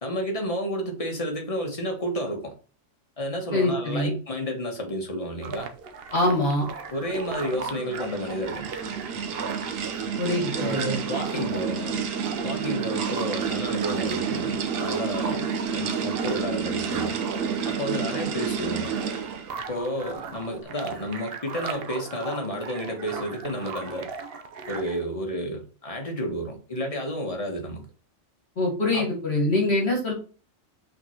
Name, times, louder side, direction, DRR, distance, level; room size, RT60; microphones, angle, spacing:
voice 1, 0.0-2.5 3.2-5.7 6.9-8.7 10.6-12.0 12.4-17.2 17.6-18.9 19.7-24.1 24.7-27.8 28.9-29.4, equal, 25° left, 1.4 m, -31 dB
voice 2, 3.5-4.1 6.1-6.7 10.2-11.0 28.6-30.1, left 2 dB, 50° left, 2.0 m, -24 dB
sound 1, 5.4-25.0, right 5 dB, 55° right, 0.9 m, -38 dB
sound 2, 7.4-19.6, right 6 dB, 85° right, 1.2 m, -30 dB
5.7 x 3.7 x 4.5 m
omnidirectional pair, 1.4 m